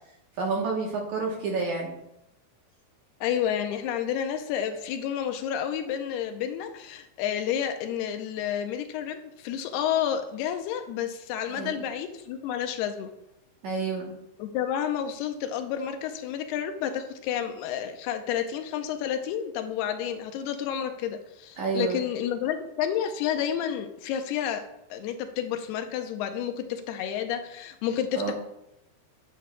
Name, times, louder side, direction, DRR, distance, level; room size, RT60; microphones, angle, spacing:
voice 1, 0.4-2.0 11.5-11.8 13.6-14.1 21.6-22.0 28.2-28.3, right 4 dB, 65° right, -2 dB, 2.1 m, -29 dB
voice 2, 3.2-13.1 14.4-24.6 24.9-28.3, left 9 dB, 85° left, 7 dB, 2.7 m, -30 dB
10.0 x 10.0 x 2.3 m, 0.84 s
omnidirectional pair, 4.7 m